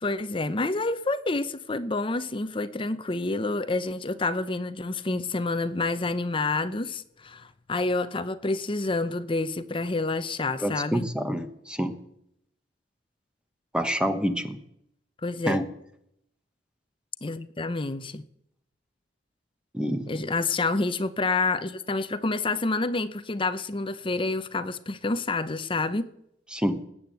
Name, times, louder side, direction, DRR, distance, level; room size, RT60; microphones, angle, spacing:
voice 1, 0.0-11.1 15.2-15.6 17.2-18.2 20.1-26.1, left 3 dB, 30° left, 13 dB, 0.7 m, -28 dB
voice 2, 10.6-11.9 13.7-14.6 15.5-15.7 19.7-20.1 26.5-26.8, equal, 5° right, 9 dB, 1.2 m, -27 dB
19.0 x 8.7 x 7.8 m, 0.76 s
head